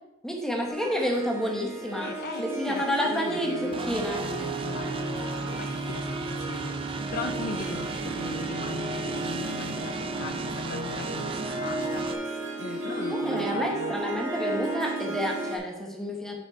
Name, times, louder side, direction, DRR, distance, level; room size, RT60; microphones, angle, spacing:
voice 1, 0.2-2.1 2.4-4.2 12.9-16.4, equal, ahead, 0 dB, 1.1 m, -30 dB
Harp, 0.7-15.6, right 3 dB, 65° right, 1.7 m, -34 dB
voice 2, 1.9-13.9, left 3 dB, 45° left, 6 dB, 0.5 m, -39 dB
sound 1, 3.7-12.1, right 3 dB, 25° right, 0.4 m, -35 dB
6.2 x 5.4 x 4.4 m, 0.95 s
head